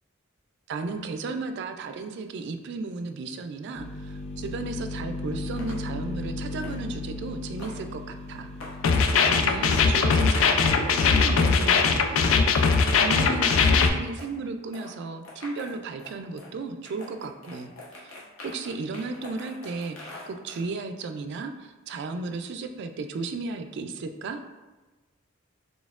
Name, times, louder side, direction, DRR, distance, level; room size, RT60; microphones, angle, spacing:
voice 1, 0.7-8.5 9.2-18.1 18.4-24.4, right 3 dB, 60° right, 7 dB, 0.3 m, -34 dB
sound 1, 3.7-10.0, left 2 dB, 35° left, 0.6 m, -36 dB
sound 2, 5.6-5.8 6.6-6.8 7.6-7.8 8.6-8.8 9.7-9.9 10.6-10.8 11.7-11.8 12.3-12.7 13.2-13.3 13.6-13.7 14.2-14.3 14.7-14.9 15.2-16.5 16.8-20.6, left 2 dB, 90° left, 0.9 m, -44 dB
sound 3, 8.8-13.9, left 5 dB, 75° left, 0.3 m, -20 dB
4.1 x 3.3 x 2.4 m, 1.2 s
head